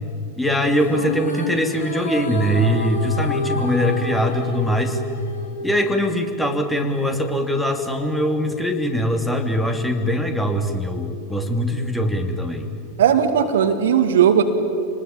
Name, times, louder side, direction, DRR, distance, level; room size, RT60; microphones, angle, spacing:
voice 1, 0.4-5.0 5.6-12.7, equal, 5° left, 4 dB, 2.6 m, -22 dB
sound 1, 0.8-6.3, left 2 dB, 75° left, 4.0 m, -30 dB
voice 2, 13.0-14.4, right 8 dB, 60° right, 7 dB, 2.1 m, -17 dB
27.0 x 20.0 x 8.8 m, 2.5 s
figure-of-eight pair, 90°, 0 cm